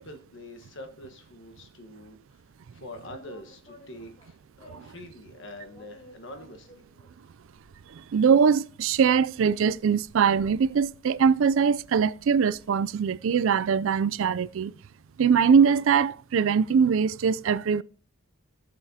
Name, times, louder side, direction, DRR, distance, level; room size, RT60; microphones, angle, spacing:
voice 1, 0.0-2.4 2.7-6.8, left 1 dB, 55° left, 1.3 m, -45 dB
sound 1, 2.9-5.0 5.7-12.7, left 1 dB, 35° left, 3.6 m, -55 dB
voice 2, 7.9-14.7 15.2-17.8, right 6 dB, 65° right, 0.3 m, -22 dB
19.0 x 6.9 x 2.8 m
head